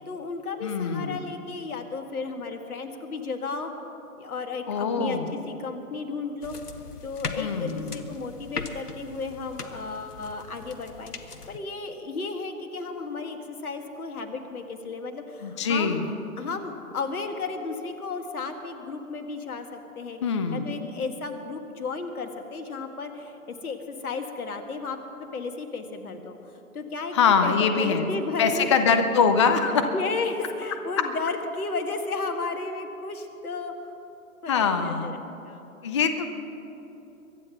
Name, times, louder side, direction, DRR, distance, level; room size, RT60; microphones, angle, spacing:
voice 1, 0.1-3.7 4.2-16.0 16.4-20.2 20.5-26.4 26.7-28.8 29.9-33.9 34.4-35.2 35.4-35.7, left 4 dB, 70° left, 6 dB, 1.8 m, -34 dB
voice 2, 0.6-1.2 4.7-5.3 7.4-8.1 15.4-16.1 20.2-20.7 27.1-28.1 28.4-29.9 31.0-31.1 34.5-35.1 35.8-36.3, left 5 dB, 20° left, 8 dB, 0.5 m, -23 dB
sound 1, 6.4-11.6, left 4 dB, 90° left, 1.2 m, -39 dB
23.0 x 8.7 x 5.9 m, 3.0 s
figure-of-eight pair, 135°, 45 cm